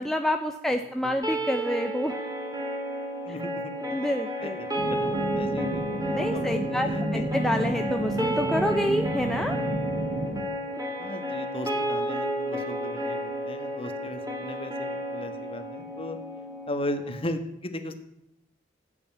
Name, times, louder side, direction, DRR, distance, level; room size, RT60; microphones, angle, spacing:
voice 1, 0.0-2.1 3.9-4.6 6.1-9.6, equal, ahead, 4 dB, 0.8 m, -28 dB
voice 2, 0.7-1.3 3.2-3.7 4.0-4.1 4.4-7.4 11.0-16.2 16.7-18.0, left 1 dB, 30° left, 8 dB, 1.6 m, -37 dB
sound 1, 1.2-17.3, equal, 20° right, 3.2 m, -32 dB
sound 2, 4.8-10.4, right 1 dB, 45° right, 1.8 m, -31 dB
15.0 x 8.6 x 9.3 m, 0.81 s
head